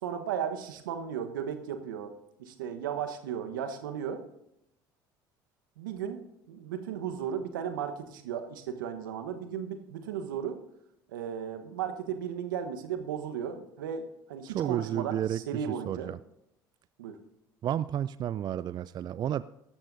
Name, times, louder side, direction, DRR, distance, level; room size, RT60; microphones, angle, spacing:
voice 1, 0.0-2.1 2.4-4.2 5.8-10.6 11.1-16.1 17.0-17.2, right 8 dB, 80° right, 7 dB, 1.1 m, -35 dB
voice 2, 14.5-16.2 17.6-19.4, right 10 dB, 40° right, 17 dB, 0.3 m, -32 dB
17.5 x 13.0 x 2.7 m, 0.81 s
hypercardioid pair, 65°, 11 cm